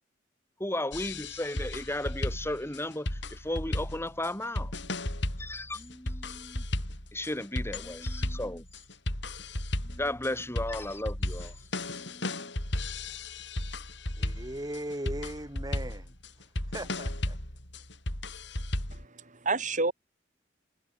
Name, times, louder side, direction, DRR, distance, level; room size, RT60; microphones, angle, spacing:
voice 1, 0.6-4.7 5.4-6.7 7.1-8.7 9.8-12.5, left 1 dB, 15° left, 6.1 m, -35 dB
sound 1, 0.9-19.1, left 1 dB, 70° left, 6.1 m, -35 dB
voice 2, 14.2-16.1 16.7-17.4, right 1 dB, 20° right, 6.0 m, -38 dB
voice 3, 18.9-19.9, right 3 dB, 45° right, 4.4 m, -30 dB
head